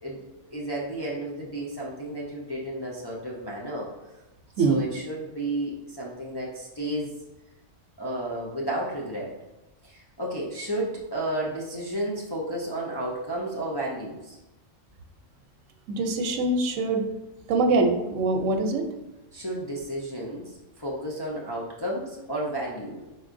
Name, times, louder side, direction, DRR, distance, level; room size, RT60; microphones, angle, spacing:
voice 1, 0.0-3.9 4.6-7.1 8.0-9.3 9.8-14.4 19.3-23.0, right 1 dB, 30° left, -5 dB, 0.4 m, -32 dB
voice 2, 15.9-17.0 17.5-18.9, right 3 dB, 85° right, 5 dB, 1.0 m, -23 dB
4.5 x 4.0 x 2.6 m, 1.0 s
omnidirectional pair, 1.3 m